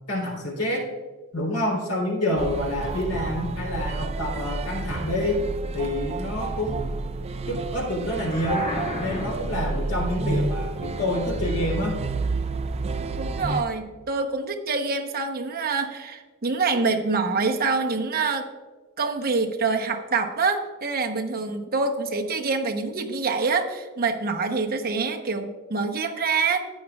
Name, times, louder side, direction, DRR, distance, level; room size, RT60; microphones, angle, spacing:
voice 1, 0.1-0.9 1.3-5.4 5.7-6.8 7.5-8.7 9.0-12.0, left 1 dB, 80° left, 0 dB, 3.5 m, -27 dB
sound 1, 2.4-13.6, right 3 dB, 30° right, 0.4 m, -30 dB
sound 2, 8.1-9.7, left 1 dB, 40° left, 2.0 m, -33 dB
voice 2, 13.2-18.5 19.0-26.6, right 4 dB, 45° right, 4 dB, 0.9 m, -26 dB
14.0 x 9.8 x 2.4 m, 1.3 s
head